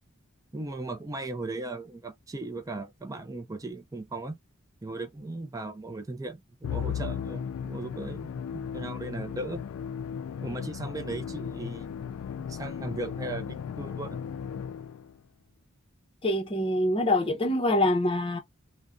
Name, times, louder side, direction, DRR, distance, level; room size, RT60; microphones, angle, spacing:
voice 1, 0.5-4.4 4.8-9.6 10.4-12.1 12.4-14.2, right 2 dB, 15° right, 0.4 m, -37 dB
Musical instrument, 6.6-15.2, left 8 dB, 75° left, 0.3 m, -36 dB
voice 2, 16.2-18.4, left 1 dB, 25° left, 0.7 m, -25 dB
2.5 x 2.1 x 3.5 m
head